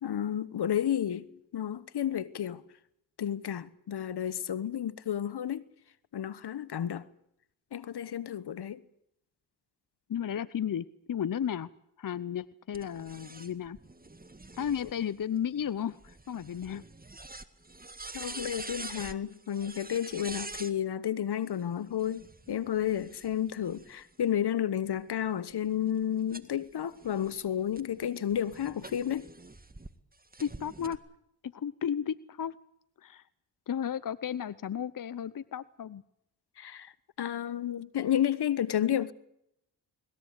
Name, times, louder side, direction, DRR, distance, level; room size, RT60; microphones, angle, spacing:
voice 1, 0.0-2.6 3.2-5.6 6.1-7.0 7.7-8.8 18.1-29.3 36.6-36.9 37.2-39.1, left 10 dB, 65° left, 1.2 m, -31 dB
voice 2, 10.1-11.7 12.0-13.8 14.6-16.8 30.4-31.0 31.4-32.6 33.0-33.2 33.7-36.0, left 9 dB, 50° left, 0.9 m, -34 dB
sound 1, 12.7-20.7 21.9-24.3 24.8-29.9 30.3-31.0, right 2 dB, 20° right, 1.9 m, -46 dB
21.0 x 20.5 x 8.3 m
supercardioid pair, 40°, 43 cm